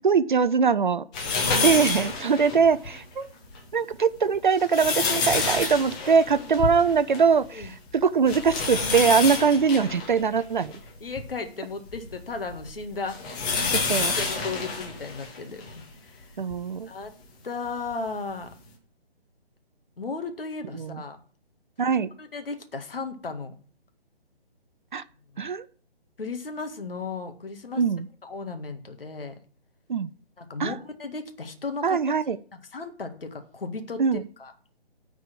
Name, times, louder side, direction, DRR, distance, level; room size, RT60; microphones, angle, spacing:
voice 1, 0.0-1.0 1.6-3.3 3.7-10.7 13.7-14.1 16.4-16.9 20.7-21.0 21.8-22.1 24.9-25.0 25.4-25.6 27.8-28.1 29.9-30.1 30.6-30.8 31.8-32.4 34.0-34.2, right 6 dB, 50° right, 16 dB, 0.5 m, -22 dB
sound 1, 1.1-3.0 3.5-3.6 4.3-7.3 7.6-7.7 8.2-11.3 11.9-15.8 16.5-16.6 17.9-18.0, left 4 dB, 5° left, 0.6 m, -28 dB
voice 2, 6.0-6.5 7.5-7.7 10.6-10.7 11.0-13.2 13.5-13.7 14.2-16.2 16.9-17.1 17.4-18.5 20.0-21.2 21.9-23.5 25.3-25.5 26.2-27.8 28.2-29.4 30.4-32.0 32.5-34.5, left 4 dB, 60° left, 6 dB, 2.0 m, -35 dB
10.0 x 4.8 x 7.5 m, 0.44 s
figure-of-eight pair, 145°, 31 cm